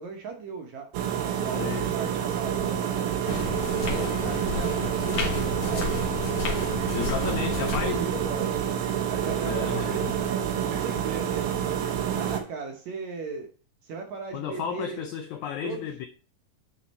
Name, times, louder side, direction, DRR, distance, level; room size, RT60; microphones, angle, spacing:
voice 1, 0.0-3.1 3.8-6.1 6.9-8.6 9.1-11.8 12.1-13.5 13.8-15.0 15.6-15.9, right 4 dB, 65° right, 1.9 m, -37 dB
sound 1, 0.9-12.4, right 9 dB, 90° right, 2.9 m, -28 dB
voice 2, 1.5-1.8 6.9-8.0 9.4-10.1 14.3-16.1, left 9 dB, 85° left, 1.7 m, -33 dB
sound 2, 3.3-8.4, left 4 dB, 60° left, 2.3 m, -32 dB
9.7 x 4.3 x 4.2 m
omnidirectional pair, 4.1 m